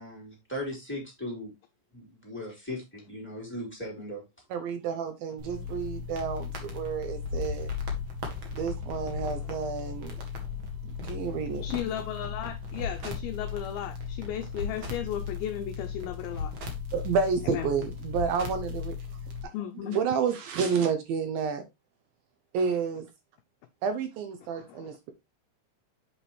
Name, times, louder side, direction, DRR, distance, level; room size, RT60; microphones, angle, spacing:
voice 1, 0.0-1.5 1.9-4.2, left 1 dB, 5° left, 3.0 m, -38 dB
voice 2, 4.5-7.7 8.5-10.2 10.8-11.6 16.9-19.0 19.4-19.5 19.8-21.7 22.5-23.1 23.8-25.1, right 6 dB, 75° right, 2.2 m, -30 dB
sound 1, 5.4-19.4, left 5 dB, 50° right, 1.4 m, -36 dB
voice 3, 9.3-9.7 11.6-16.5 17.4-17.7 19.5-20.0 24.7-24.9, left 10 dB, 80° left, 2.2 m, -35 dB
8.0 x 5.8 x 3.1 m
omnidirectional pair, 4.9 m